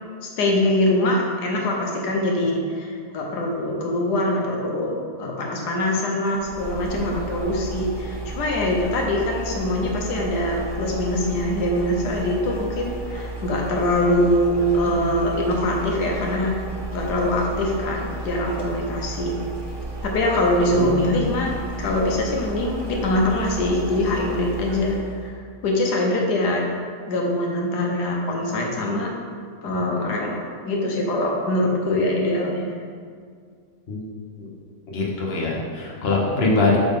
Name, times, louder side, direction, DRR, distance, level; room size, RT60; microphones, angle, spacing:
voice 1, 0.2-16.5 16.9-19.3 20.0-25.3 25.6-26.6 27.1-29.1 29.6-32.7, left 1 dB, 85° left, -1 dB, 1.5 m, -23 dB
sound 1, 6.3-25.2, right 2 dB, 30° right, 0.4 m, -33 dB
voice 2, 20.7-21.1 33.9-34.0 34.4-34.5 34.9-36.8, left 3 dB, 45° left, -4 dB, 1.2 m, -23 dB
7.9 x 3.8 x 3.7 m, 2.1 s
omnidirectional pair, 1.7 m